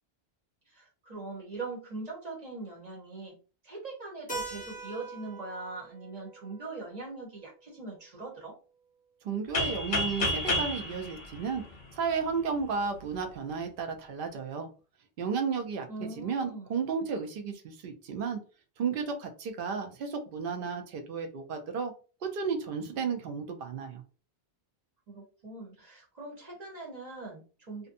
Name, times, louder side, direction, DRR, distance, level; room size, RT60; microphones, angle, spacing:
voice 1, 0.7-3.3 3.6-8.5 15.9-16.8 25.1-27.9, right 3 dB, 40° right, -3 dB, 1.0 m, -41 dB
Keyboard (musical), 4.3-8.7, right 3 dB, 10° left, 0.8 m, -44 dB
voice 2, 9.2-11.6 11.9-14.7 15.2-18.4 18.8-21.9 22.2-24.0, right 5 dB, 60° right, 5 dB, 0.7 m, -33 dB
sound 1, 9.5-12.3, left 2 dB, 55° left, 0.7 m, -31 dB
2.6 x 2.1 x 2.5 m, 0.35 s
omnidirectional pair, 1.1 m